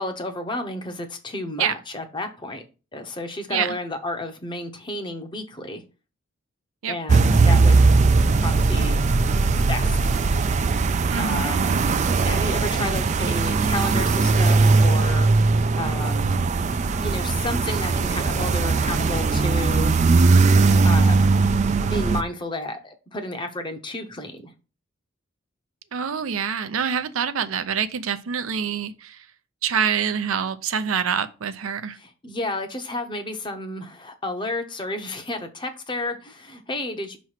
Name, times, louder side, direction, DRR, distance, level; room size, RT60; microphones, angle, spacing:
voice 1, 0.0-2.6 2.9-5.8 6.9-7.8 8.4-9.0 9.7-10.1 11.2-11.8 12.2-15.3 15.8-16.4 17.0-19.9 20.6-21.3 21.9-24.5 32.0-37.2, left 1 dB, 25° left, 0.8 m, -31 dB
sound 1, 7.1-22.2, right 3 dB, 35° right, 0.3 m, -19 dB
voice 2, 11.1-11.8 25.9-29.2 29.6-32.0, right 7 dB, 85° right, 0.5 m, -26 dB
5.7 x 3.1 x 5.6 m
head